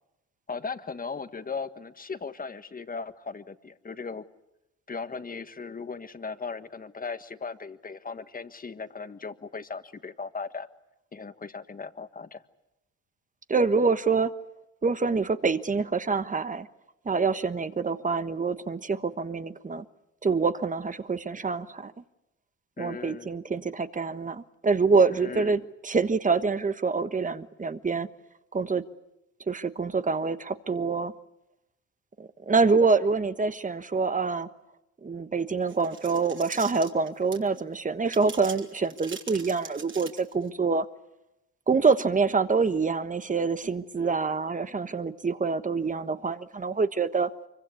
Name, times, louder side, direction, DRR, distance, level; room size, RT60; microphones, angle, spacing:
voice 1, 0.5-4.2 4.9-10.7 11.1-12.4 22.8-23.3 25.2-25.5, left 4 dB, 30° left, 10 dB, 1.5 m, -37 dB
voice 2, 13.5-14.3 14.8-16.7 17.0-19.8 20.2-21.9 22.8-28.1 28.5-28.8 29.5-31.1 32.2-34.5 35.0-40.9 41.7-47.3, right 4 dB, 25° right, 12 dB, 1.2 m, -26 dB
sound 1, 35.7-37.6 38.0-40.5, right 5 dB, 40° right, 3.2 m, -42 dB
24.5 x 23.5 x 8.4 m, 0.92 s
cardioid pair, 90°, 30 cm